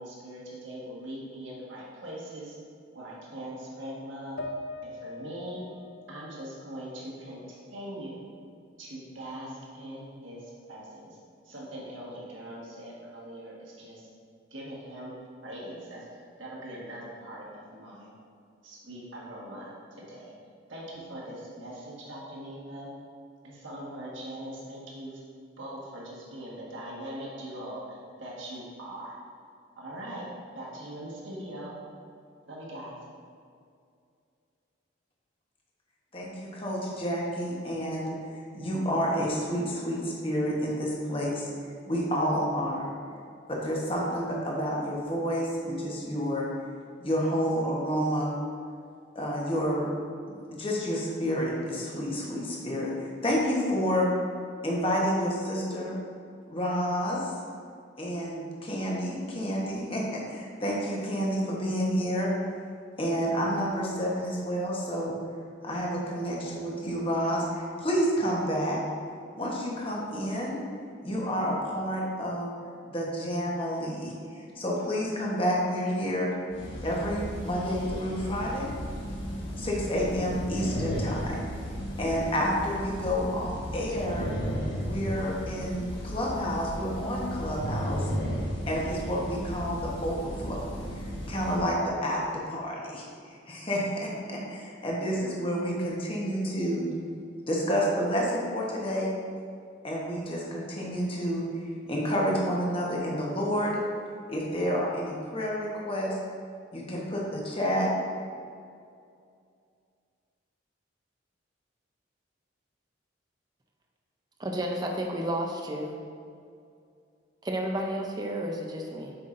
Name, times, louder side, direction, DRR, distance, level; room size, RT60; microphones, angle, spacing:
voice 1, 0.0-2.5 2.9-4.4 4.8-5.7 6.1-8.2 8.8-11.2 11.4-14.1 14.5-18.1 18.6-20.3 20.7-22.9 23.4-25.2 25.6-29.2 29.8-31.8 32.5-33.0, right 1 dB, 80° right, -5 dB, 1.5 m, -41 dB
sound 1, 4.4-7.8 8.2-9.2, left 2 dB, 60° left, 0.4 m, -43 dB
voice 2, 36.1-38.1 38.5-41.5 41.9-42.9 43.5-46.5 47.0-48.3 49.1-49.9 50.3-54.1 54.6-56.0 56.5-57.3 58.0-62.3 63.0-65.1 65.6-68.8 69.3-70.6 71.0-72.5 72.9-74.1 74.6-76.3 76.8-78.7 79.6-81.5 82.0-84.3 84.8-88.1 88.7-90.7 91.3-96.9 97.5-99.1 99.8-103.8 104.3-106.2 106.7-107.9, equal, 30° left, -3 dB, 1.1 m, -29 dB
sound 2, 76.5-91.6, equal, 75° left, 1.2 m, -34 dB
voice 3, 114.4-116.0 117.4-119.2, right 1 dB, 20° right, 2 dB, 0.5 m, -31 dB
7.6 x 5.7 x 2.6 m, 2.4 s
head